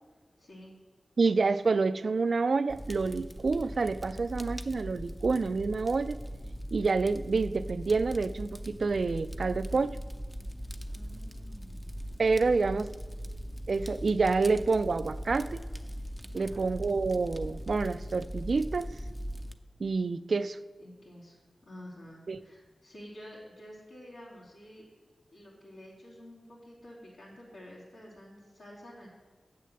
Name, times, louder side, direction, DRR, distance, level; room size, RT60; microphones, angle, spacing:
voice 1, 0.4-0.8 10.9-11.9 16.3-16.7 20.8-21.4 21.6-24.8 25.3-29.1, equal, 80° left, -9 dB, 3.2 m, -50 dB
voice 2, 1.2-6.2 6.7-10.0 12.2-12.9 13.7-15.6 16.3-18.9 19.8-20.6 22.3-22.4, right 4 dB, 65° right, 14 dB, 0.4 m, -28 dB
Fire, 2.7-19.5, equal, 10° left, 0.6 m, -40 dB
7.6 x 6.7 x 7.7 m, 1.4 s
cardioid pair, 60°, 0 cm